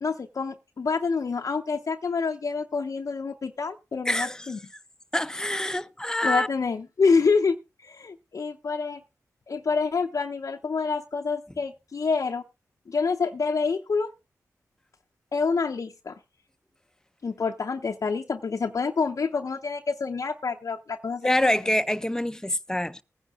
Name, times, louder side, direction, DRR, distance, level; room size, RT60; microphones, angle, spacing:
voice 1, 0.0-4.6 6.2-9.0 9.5-12.4 12.9-14.1 15.3-16.2 17.2-21.5, left 4 dB, 55° left, 0.6 m, -27 dB
voice 2, 4.1-4.5 5.1-6.5 21.2-23.0, left 1 dB, 10° left, 0.6 m, -26 dB
20.5 x 10.0 x 2.4 m
cardioid pair, 40°, 6 cm